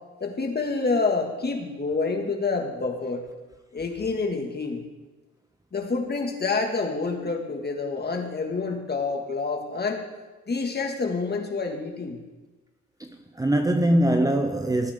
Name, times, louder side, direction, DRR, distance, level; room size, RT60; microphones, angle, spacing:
voice 1, 0.2-3.3 3.7-4.8 5.7-10.1 10.5-12.2, left 4 dB, 35° left, 2.0 m, -28 dB
voice 2, 13.0-14.9, right 1 dB, 10° right, 0.8 m, -22 dB
18.5 x 8.9 x 3.7 m
cardioid pair, 90°, 30 cm